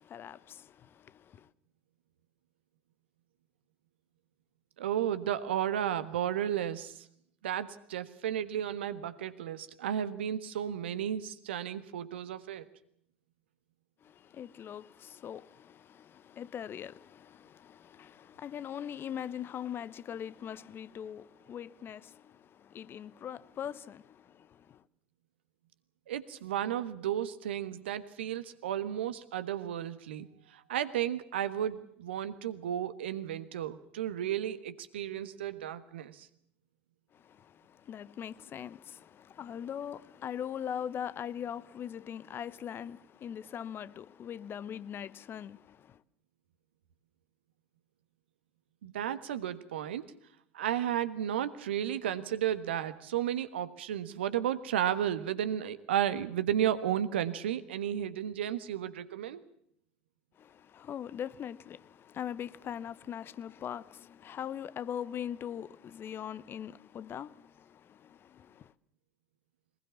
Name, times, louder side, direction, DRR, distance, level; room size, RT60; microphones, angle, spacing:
voice 1, 0.0-1.5 14.0-24.8 37.1-46.0 60.4-68.7, left 9 dB, 35° left, 0.9 m, -41 dB
voice 2, 4.8-7.1 7.4-12.7 26.1-36.3 48.8-50.0 50.5-59.4, right 10 dB, 70° right, 1.4 m, -33 dB
23.0 x 21.0 x 7.2 m
figure-of-eight pair, 65°, 6 cm